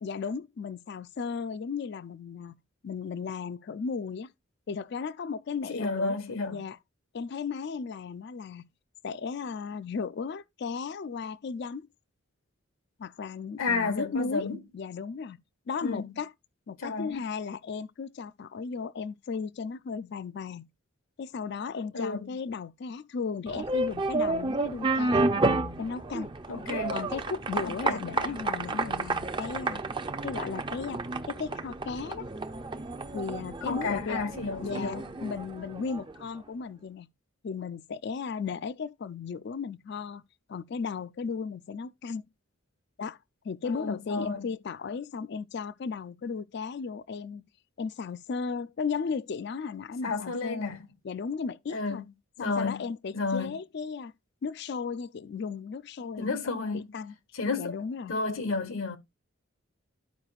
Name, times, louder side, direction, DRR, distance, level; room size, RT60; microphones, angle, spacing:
voice 1, 0.0-2.6 2.8-4.3 4.7-6.2 6.5-6.8 7.1-8.7 9.0-11.9 13.0-15.4 15.7-16.3 16.7-20.7 21.2-25.3 25.8-26.3 26.9-29.8 30.2-32.3 33.1-34.3 34.6-37.1 37.4-40.2 40.5-42.3 43.0-43.2 43.4-47.5 47.8-50.7 51.0-52.0 52.4-54.1 54.4-57.1 57.6-58.1, left 5 dB, 55° left, 0.4 m, -35 dB
voice 2, 5.7-6.7 13.6-14.6 15.8-16.0 16.8-17.1 21.9-22.3 26.5-27.1 27.6-28.4 33.6-35.1 43.6-44.5 50.0-50.9 51.7-52.0 52.4-52.8 53.1-53.6 56.2-56.9 57.3-57.7 58.1-59.0, left 4 dB, 85° left, 1.2 m, -32 dB
sound 1, 23.5-36.2, right 2 dB, 25° right, 0.5 m, -31 dB
13.5 x 4.9 x 2.3 m
head